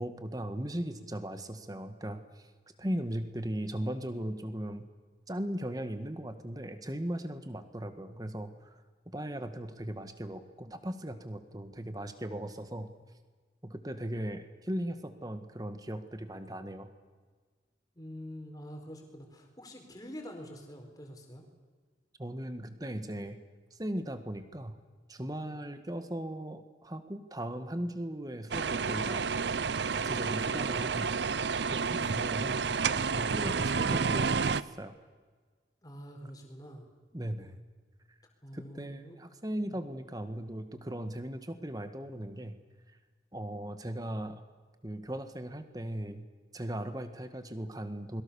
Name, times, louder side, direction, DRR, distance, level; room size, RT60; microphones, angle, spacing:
voice 1, 0.0-2.5 2.8-4.8 5.3-8.8 9.0-12.9 13.6-16.9 22.2-23.4 23.7-24.7 25.1-29.3 29.9-31.1 31.7-34.9 37.1-37.6 38.5-42.6 43.3-44.4 44.8-46.3 46.5-48.2, right 1 dB, 20° right, 9 dB, 1.6 m, -38 dB
voice 2, 18.0-21.4 31.9-32.3 35.8-36.8 38.4-39.2, equal, 20° left, 3 dB, 4.4 m, -46 dB
sound 1, 28.5-34.6, right 5 dB, 70° right, 0.6 m, -30 dB
28.0 x 22.5 x 7.1 m, 1.5 s
head